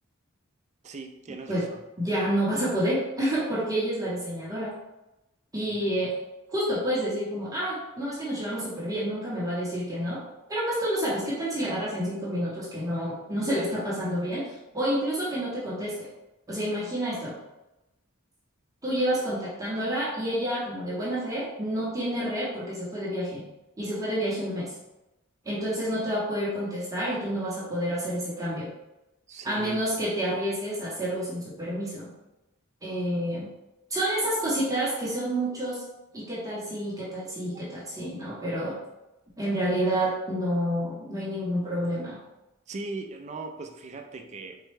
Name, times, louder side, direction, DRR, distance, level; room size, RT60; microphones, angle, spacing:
voice 1, 0.8-1.8 5.6-5.8 29.3-29.8 37.5-37.6 42.7-44.6, right 3 dB, 35° right, 4 dB, 0.4 m, -39 dB
voice 2, 2.0-4.7 5.5-6.1 6.5-10.2 10.5-16.1 16.5-17.3 18.8-23.4 23.8-24.7 25.4-28.7 29.4-32.1 32.8-33.5 33.9-35.8 36.1-38.8 39.4-42.2, equal, 15° right, -7 dB, 0.8 m, -29 dB
4.1 x 2.2 x 3.2 m, 0.96 s
head